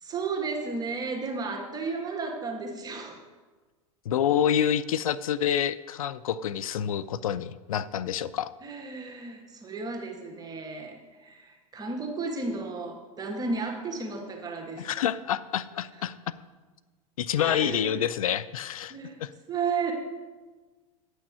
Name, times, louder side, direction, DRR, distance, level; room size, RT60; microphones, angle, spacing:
voice 1, 0.0-3.2 8.6-14.8 17.4-18.0 18.9-19.2 19.5-19.9, right 4 dB, 20° right, 2 dB, 1.6 m, -33 dB
voice 2, 4.1-8.5 14.8-16.2 17.2-19.3, left 9 dB, 75° left, 16 dB, 0.5 m, -28 dB
9.1 x 6.3 x 7.3 m, 1.3 s
hypercardioid pair, 95°, 18 cm